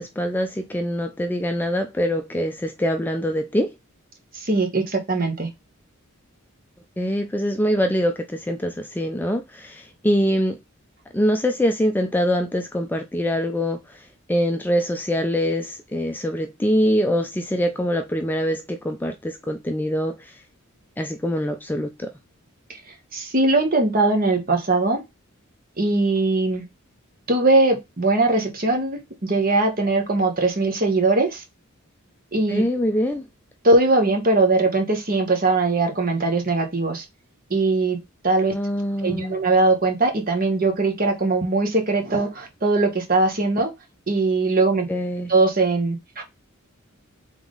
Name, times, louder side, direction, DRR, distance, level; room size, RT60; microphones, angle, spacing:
voice 1, 0.0-3.7 7.0-10.6 11.1-20.4 21.0-22.1 32.5-33.3 38.5-39.4 44.9-45.3, equal, 10° left, 0.3 m, -24 dB
voice 2, 4.3-5.5 22.7-22.8 23.1-25.0 25.8-26.6 27.3-31.4 32.3-32.6 33.6-37.0 37.5-38.0 38.2-38.5 39.0-43.7 44.1-44.9 45.3-46.2, right 2 dB, 45° right, 1.1 m, -20 dB
3.6 x 3.5 x 3.8 m
head